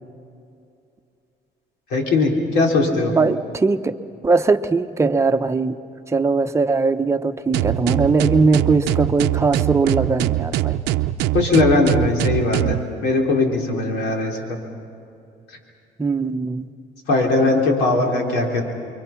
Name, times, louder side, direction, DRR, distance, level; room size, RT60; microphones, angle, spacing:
voice 1, 1.9-3.1 11.3-14.6 17.1-18.6, left 3 dB, 90° left, 1 dB, 3.6 m, -19 dB
voice 2, 3.0-4.0 4.2-5.8 6.1-10.8 16.0-16.7, right 4 dB, 15° right, 6 dB, 0.9 m, -20 dB
sound 1, 7.5-12.8, right 14 dB, 85° right, 0.6 m, -22 dB
29.5 x 23.5 x 5.9 m, 2.6 s
cardioid pair, 110°, 17 cm